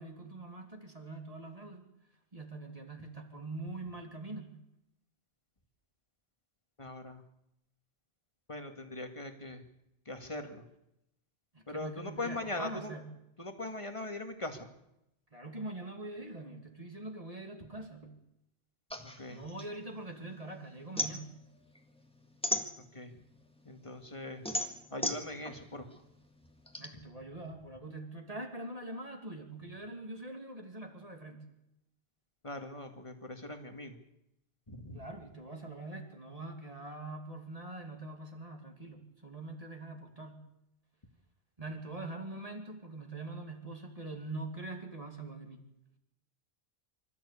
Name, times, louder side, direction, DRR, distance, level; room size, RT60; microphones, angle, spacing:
voice 1, 0.0-4.6 11.5-13.1 15.3-18.2 19.3-21.3 26.8-31.5 34.9-40.5 41.6-45.6, right 2 dB, 35° right, 2 dB, 2.8 m, -43 dB
voice 2, 6.8-7.2 8.5-9.6 10.1-10.6 11.7-12.9 13.4-14.7 19.0-19.4 22.9-23.1 23.7-24.4 24.9-25.9 32.4-34.0 34.7-35.0, left 2 dB, 30° left, 5 dB, 2.2 m, -41 dB
sound 1, 18.9-20.4 20.7-23.3 23.7-26.9, equal, 5° left, 1.8 m, -36 dB
25.0 x 14.0 x 8.5 m, 0.85 s
omnidirectional pair, 1.1 m